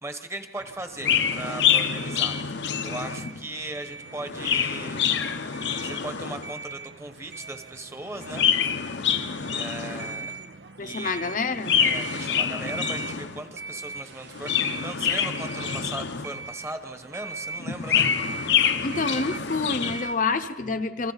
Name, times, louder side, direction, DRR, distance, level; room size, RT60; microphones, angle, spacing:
voice 1, 0.0-2.4 2.8-5.3 5.8-8.5 9.5-10.3 10.8-11.4 11.7-18.1, right 2 dB, 15° right, 7 dB, 1.2 m, -38 dB
sound 1, 0.6-20.1, right 4 dB, 75° right, 0.7 m, -41 dB
Chirp tweet, 1.0-3.4 4.1-6.6 8.1-10.3 11.5-13.4 14.2-16.5 17.6-20.1, left 8 dB, 80° left, 0.9 m, -26 dB
voice 2, 10.8-12.2 18.8-21.1, left 3 dB, 45° left, 7 dB, 0.8 m, -28 dB
27.5 x 23.5 x 4.1 m, 1.2 s
head